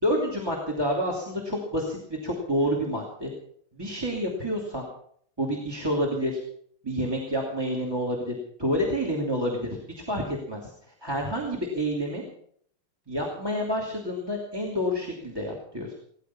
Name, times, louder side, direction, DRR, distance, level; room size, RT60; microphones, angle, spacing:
voice 1, 0.0-3.3 3.8-4.9 5.4-6.4 6.8-9.8 10.1-10.7 11.0-12.2 13.1-15.9, equal, 15° right, 0 dB, 2.7 m, -28 dB
17.5 x 14.5 x 5.7 m, 0.64 s
omnidirectional pair, 1.8 m